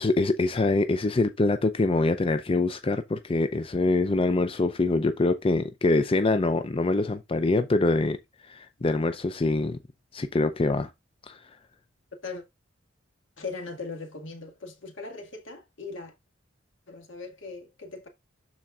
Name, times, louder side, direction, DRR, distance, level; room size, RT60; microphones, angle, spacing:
voice 1, 0.0-8.2 8.4-9.8 10.1-10.9 11.2-11.4, left 2 dB, 30° left, 0.5 m, -24 dB
voice 2, 13.4-16.1 16.9-18.1, left 4 dB, 70° left, 1.9 m, -39 dB
12.0 x 4.3 x 2.4 m
head